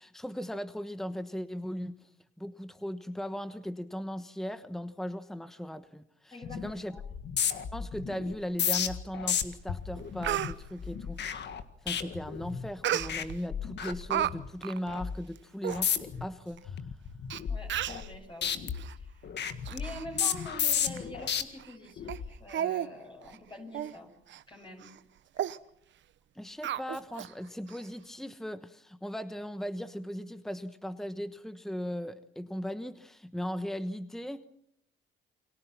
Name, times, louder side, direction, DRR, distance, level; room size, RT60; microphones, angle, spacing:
voice 1, 0.0-2.1 2.4-6.9 7.7-11.5 11.8-16.9 26.3-34.4, equal, ahead, 11 dB, 1.1 m, -38 dB
voice 2, 6.3-7.0 17.5-19.2 19.7-24.1 24.5-24.9, left 1 dB, 25° left, 1 dB, 6.7 m, -45 dB
sound 1, 6.4-6.7 7.0-12.7 13.0-13.3 13.5-14.5 14.9-15.2 15.7-16.2 16.7-18.2 18.4-21.4 22.0-22.3, left 8 dB, 60° left, 1.8 m, -33 dB
Speech, 9.5-9.6 10.0-10.5 12.8-13.4 13.8-14.3 14.6-14.8 15.4-15.5 15.6-15.8 16.6-16.7 17.3-17.4 17.7-18.1 18.7-18.9 19.4-20.1 20.4-20.5 21.0-21.1 21.6-21.7 22.1-22.2 22.5-22.9 23.2-23.4 23.7-23.9 24.3-24.4 24.8-25.0 25.4-25.6 26.6-27.3 27.7-27.8, right 11 dB, 70° right, 1.0 m, -33 dB
29.0 x 22.5 x 5.9 m, 0.70 s
cardioid pair, 90°, 20 cm